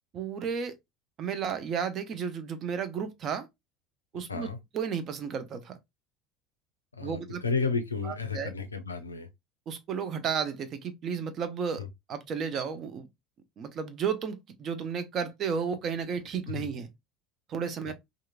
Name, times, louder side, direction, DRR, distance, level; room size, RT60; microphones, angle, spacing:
voice 1, 0.1-0.7 1.2-3.5 4.1-4.5 4.7-5.8 7.0-7.4 8.0-8.5 9.7-11.8 12.1-13.1 13.6-16.9 17.5-17.9, right 6 dB, 40° right, 0.6 m, -33 dB
voice 2, 7.0-9.3 11.8-11.9 16.5-16.7 17.9-18.0, left 4 dB, 80° left, 0.4 m, -32 dB
2.8 x 2.5 x 2.2 m
figure-of-eight pair, 70°, 0 cm